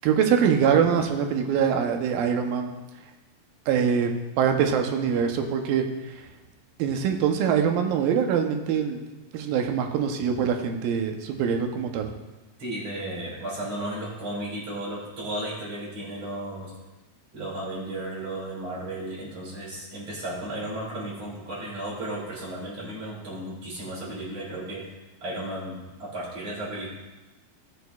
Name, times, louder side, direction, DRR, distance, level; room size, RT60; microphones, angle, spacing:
voice 1, 0.0-2.7 3.7-4.1 4.4-5.9 6.8-9.0 9.3-12.1, right 7 dB, 80° right, 4 dB, 2.6 m, -23 dB
voice 2, 12.6-16.7 17.3-25.0 25.2-26.9, right 1 dB, 45° right, -6 dB, 4.4 m, -34 dB
18.5 x 6.9 x 2.4 m, 1.1 s
omnidirectional pair, 4.1 m